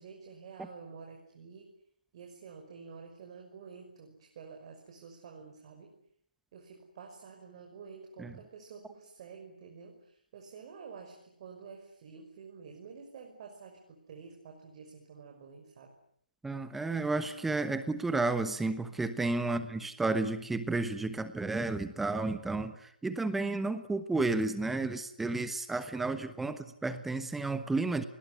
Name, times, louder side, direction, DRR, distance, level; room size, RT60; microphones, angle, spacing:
voice 1, 0.0-1.7 2.1-5.9 6.5-15.9 19.4-19.9 26.5-26.6, right 5 dB, 40° right, 2 dB, 5.8 m, -50 dB
voice 2, 16.4-28.0, right 3 dB, 5° right, 11 dB, 1.2 m, -32 dB
28.0 x 21.0 x 9.6 m, 0.67 s
figure-of-eight pair, 140°, 5 cm